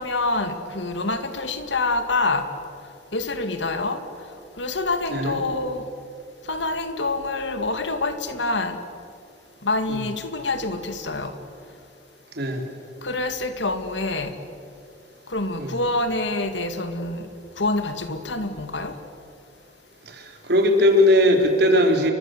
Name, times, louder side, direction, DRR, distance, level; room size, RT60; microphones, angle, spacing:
voice 1, 0.0-2.5 3.1-4.0 4.6-5.8 6.5-8.8 9.6-11.4 13.0-14.4 15.3-17.3 17.6-19.0, left 2 dB, 75° left, 8 dB, 2.3 m, -26 dB
voice 2, 20.0-22.1, left 1 dB, 60° right, 3 dB, 3.9 m, -19 dB
30.0 x 23.5 x 8.0 m, 2.4 s
head